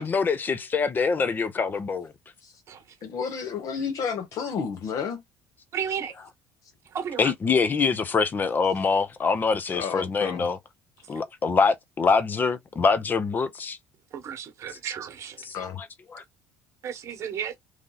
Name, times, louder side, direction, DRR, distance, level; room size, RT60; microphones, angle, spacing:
voice 1, 0.0-2.1 7.2-10.6 11.1-13.8 15.5-16.2, left 5 dB, 30° left, 0.7 m, -25 dB
voice 2, 3.0-5.2 9.7-10.5 15.5-15.8, left 6 dB, 55° left, 1.0 m, -31 dB
voice 3, 5.7-6.1 6.8-7.3 11.1-11.2 14.1-15.5 16.8-17.6, right 8 dB, 45° right, 1.2 m, -33 dB
3.2 x 2.7 x 3.8 m
supercardioid pair, 105°, 7 cm